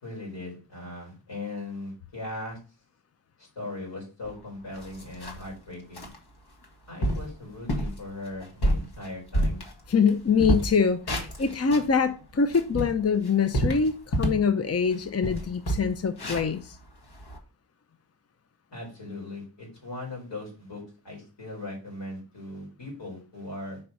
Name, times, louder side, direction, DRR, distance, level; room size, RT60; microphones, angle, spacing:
voice 1, 0.0-2.6 3.4-6.1 6.9-9.6 18.7-23.8, left 2 dB, 90° left, 4.3 m, -39 dB
sound 1, 4.3-4.4 4.7-5.5 5.9-6.2 6.6-6.7 7.0-7.3 7.7-8.0 8.4-10.1 10.4-11.9 12.4-14.5 14.9-15.0 15.2-17.4, equal, 65° left, 1.6 m, -28 dB
voice 2, 9.9-16.8, left 5 dB, 35° left, 0.6 m, -24 dB
5.4 x 4.5 x 5.4 m
wide cardioid pair, 100°, 42 cm